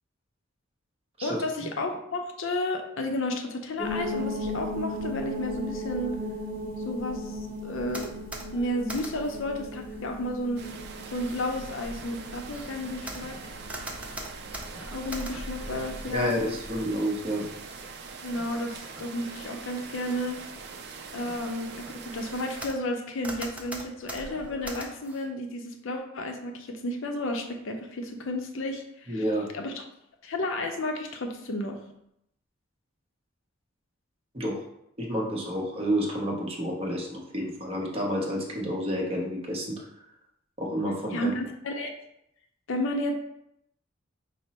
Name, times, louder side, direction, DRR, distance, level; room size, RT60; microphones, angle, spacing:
voice 1, 1.2-6.2 6.8-8.1 8.5-10.7 11.1-13.4 14.8-16.4 18.2-20.4 21.1-29.2 29.5-29.8 30.2-31.8 41.1-41.9 42.7-43.1, left 1 dB, 70° left, 4 dB, 0.6 m, -32 dB
sound 1, 3.8-16.8, equal, 10° left, 0.9 m, -37 dB
sound 2, 7.9-9.4 9.9-10.5 11.1-15.8 16.2-16.8 17.7-17.9 18.3-19.4 19.8-20.2 20.6-20.8 21.2-23.0 23.2-25.3, right 1 dB, 5° right, 0.5 m, -42 dB
sound 3, 10.6-22.7, right 4 dB, 55° right, 0.5 m, -43 dB
voice 2, 16.1-17.5 29.1-29.5 34.3-34.6 35.0-39.8 40.6-41.3, equal, 30° right, -1 dB, 0.8 m, -29 dB
5.1 x 2.0 x 4.1 m, 0.78 s
head